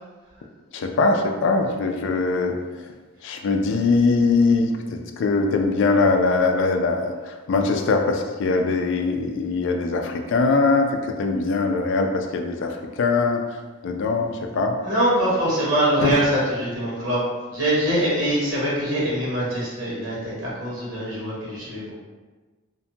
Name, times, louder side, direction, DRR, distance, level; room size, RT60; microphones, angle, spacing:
voice 1, 0.7-2.5 3.2-13.4 13.8-14.8 16.0-16.1, left 3 dB, 60° left, 4 dB, 0.3 m, -22 dB
voice 2, 14.8-17.2 17.5-21.9, right 1 dB, 70° right, -6 dB, 1.0 m, -23 dB
2.5 x 2.2 x 2.7 m, 1.3 s
head